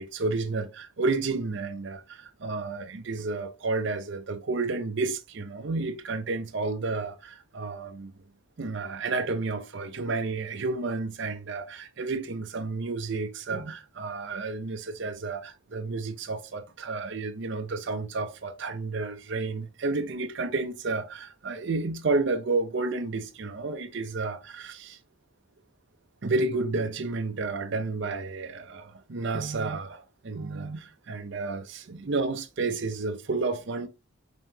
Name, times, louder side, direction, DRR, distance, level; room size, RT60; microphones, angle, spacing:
voice 1, 0.0-8.1 8.6-25.0 26.2-33.9, right 3 dB, 60° right, 0.6 m, -31 dB
5.4 x 3.0 x 2.8 m
head